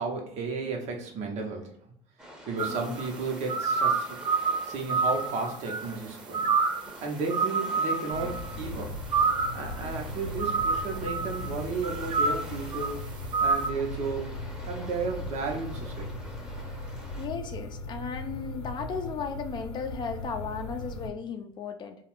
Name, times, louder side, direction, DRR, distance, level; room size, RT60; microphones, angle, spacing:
voice 1, 0.0-1.7 2.4-4.2 4.6-6.5 7.0-9.0 9.5-13.0 13.4-14.4 14.7-16.1, right 4 dB, 50° right, 1 dB, 0.9 m, -33 dB
sound 1, 2.2-17.3, equal, 5° right, 0.8 m, -47 dB
sound 2, 2.6-3.1 3.5-6.0 6.3-6.9 7.3-8.6 9.1-9.8 10.4-11.5 11.8-12.9 13.3-13.7, right 4 dB, 30° right, 0.3 m, -28 dB
sound 3, 8.1-21.1, left 1 dB, 80° left, 0.6 m, -38 dB
voice 2, 17.2-22.0, left 5 dB, 30° left, 5 dB, 0.5 m, -35 dB
2.3 x 2.3 x 3.4 m, 0.72 s
supercardioid pair, 100°, 14 cm